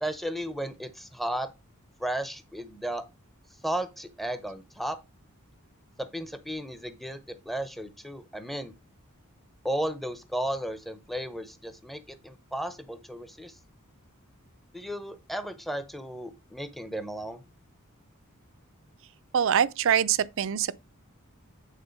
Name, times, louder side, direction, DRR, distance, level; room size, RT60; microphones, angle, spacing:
voice 1, 0.0-1.5 2.0-3.0 3.6-5.0 6.0-7.2 7.5-8.7 9.6-13.5 14.7-17.4, right 1 dB, ahead, 0.7 m, -34 dB
voice 2, 19.3-20.8, right 8 dB, 65° right, 0.5 m, -24 dB
9.1 x 3.7 x 5.2 m
head